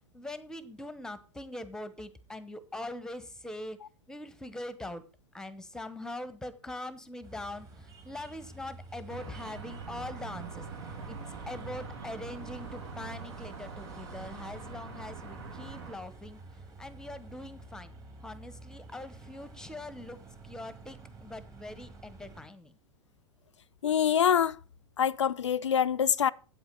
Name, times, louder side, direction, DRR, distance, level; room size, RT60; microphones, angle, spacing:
voice 1, 0.1-3.8 4.1-5.0 5.3-7.7 8.0-10.6 11.0-11.2 11.5-16.4 16.8-17.9 18.2-20.2 20.4-22.7, left 1 dB, 5° left, 0.9 m, -42 dB
sound 1, 7.2-22.5, right 3 dB, 25° right, 2.1 m, -50 dB
sound 2, 9.1-15.9, right 4 dB, 65° right, 2.0 m, -43 dB
voice 2, 23.8-24.6 25.0-26.3, left 8 dB, 80° left, 0.4 m, -25 dB
8.3 x 8.1 x 5.3 m
figure-of-eight pair, 100°, 15 cm